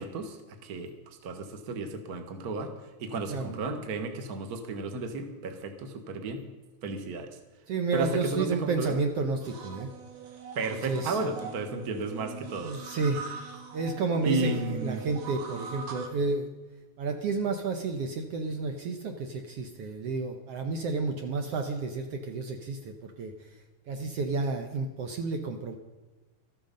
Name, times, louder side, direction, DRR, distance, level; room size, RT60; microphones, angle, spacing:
voice 1, 0.0-6.4 6.8-7.4 7.9-9.0 10.5-12.8 14.2-15.0, right 3 dB, 40° right, 6 dB, 1.4 m, -33 dB
voice 2, 3.3-3.6 7.7-9.9 10.7-11.2 12.6-13.3 13.7-16.5 17.0-23.5 23.9-25.8, right 4 dB, 65° right, 4 dB, 1.8 m, -31 dB
sound 1, 9.4-16.1, right 6 dB, 85° right, 3.4 m, -42 dB
13.5 x 13.0 x 5.3 m, 1.2 s
omnidirectional pair, 3.5 m